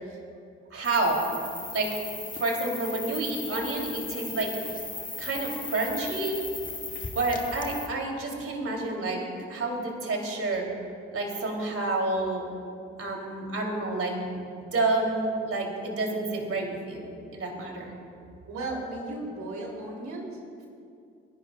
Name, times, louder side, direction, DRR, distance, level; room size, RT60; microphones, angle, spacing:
voice 1, 0.7-1.2 1.7-1.9 2.3-4.5 5.2-6.4 7.1-9.2 9.5-10.6 11.1-12.4 13.0-17.9, right 2 dB, 50° right, 0 dB, 3.2 m, -29 dB
sound 1, 0.8-7.9, left 3 dB, 25° left, 1.8 m, -37 dB
voice 2, 18.5-20.3, right 2 dB, 70° right, -1 dB, 3.2 m, -35 dB
29.5 x 11.0 x 2.4 m, 2.4 s
hypercardioid pair, 40°, 29 cm